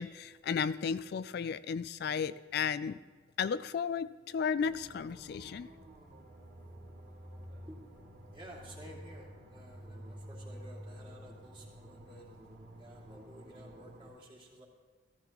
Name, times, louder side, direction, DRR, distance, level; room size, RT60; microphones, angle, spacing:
voice 1, 0.0-3.0 3.4-5.7, left 6 dB, 55° left, 14 dB, 0.3 m, -34 dB
sound 1, 4.6-14.1, equal, 60° right, 2.5 m, -50 dB
voice 2, 8.3-12.3 12.8-14.6, equal, 25° right, -2 dB, 2.5 m, -53 dB
14.5 x 14.0 x 3.0 m, 1.4 s
head